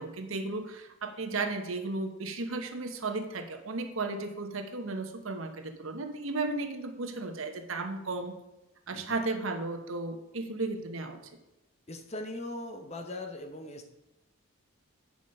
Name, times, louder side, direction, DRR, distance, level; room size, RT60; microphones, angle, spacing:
voice 1, 0.0-8.4 8.9-11.2, right 3 dB, 75° right, 5 dB, 1.0 m, -34 dB
voice 2, 11.9-13.9, left 1 dB, 30° left, 5 dB, 0.7 m, -40 dB
9.0 x 5.2 x 5.4 m, 0.95 s
head